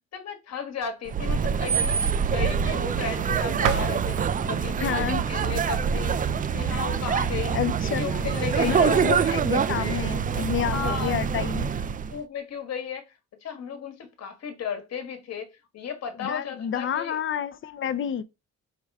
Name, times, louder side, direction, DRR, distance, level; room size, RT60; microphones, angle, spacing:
voice 1, 0.1-4.2 4.4-6.2 6.5-7.6 8.0-9.4 9.8-10.0 10.7-11.2 12.1-13.1 13.4-15.5 15.7-17.2, left 7 dB, 60° left, 1.3 m, -34 dB
sound 1, 1.1-12.2, right 7 dB, 30° right, 0.3 m, -25 dB
sound 2, 3.6-6.4, right 8 dB, 90° right, 0.6 m, -34 dB
voice 2, 4.8-5.2 7.5-8.3 8.6-11.7 16.2-18.2, left 9 dB, 45° left, 0.5 m, -29 dB
4.8 x 2.1 x 4.6 m
cardioid pair, 90°, 30 cm